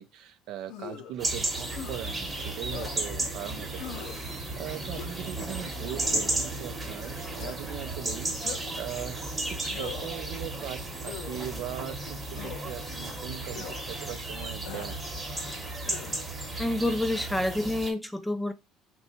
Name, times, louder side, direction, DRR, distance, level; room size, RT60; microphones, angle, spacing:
voice 1, 0.0-3.9 4.2-15.0, right 11 dB, 70° right, 0.5 m, -40 dB
sound 1, 0.7-1.1 1.7-2.0 2.7-3.0 3.8-4.2 4.9-5.3 6.0-6.4 7.4-7.6 8.4-8.8 9.7-10.2 11.0-11.4 12.4-12.6 13.5-13.8 14.7-15.0 15.8-16.2, left 9 dB, 75° left, 0.5 m, -41 dB
sound 2, 1.1-15.0, right 5 dB, 45° right, 0.8 m, -49 dB
sound 3, 1.2-17.9, right 2 dB, 15° right, 1.0 m, -34 dB
voice 2, 16.6-18.5, left 1 dB, 5° left, 0.4 m, -28 dB
2.8 x 2.2 x 4.1 m
cardioid pair, 110°, 0 cm